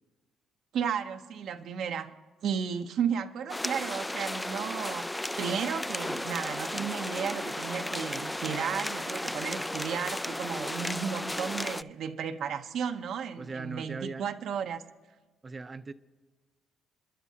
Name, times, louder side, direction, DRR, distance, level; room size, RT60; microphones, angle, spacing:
voice 1, 0.7-2.1 2.4-14.8, right 7 dB, 70° right, 0.8 m, -34 dB
sound 1, 3.5-11.8, left 1 dB, 10° left, 0.3 m, -34 dB
voice 2, 13.4-14.2 15.4-15.9, right 3 dB, 30° right, 0.6 m, -39 dB
28.5 x 11.0 x 2.8 m
cardioid pair, 80°, 0 cm